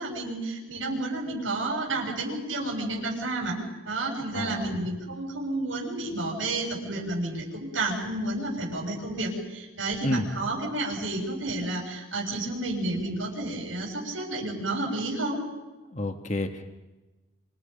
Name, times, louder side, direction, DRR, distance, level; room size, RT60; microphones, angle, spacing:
voice 1, 0.0-3.6 3.8-15.4, right 2 dB, 85° right, -1 dB, 6.8 m, -31 dB
voice 2, 4.3-4.8 10.0-10.3 15.9-16.7, left 1 dB, 35° left, 5 dB, 1.7 m, -30 dB
29.5 x 27.5 x 5.4 m, 1.1 s
head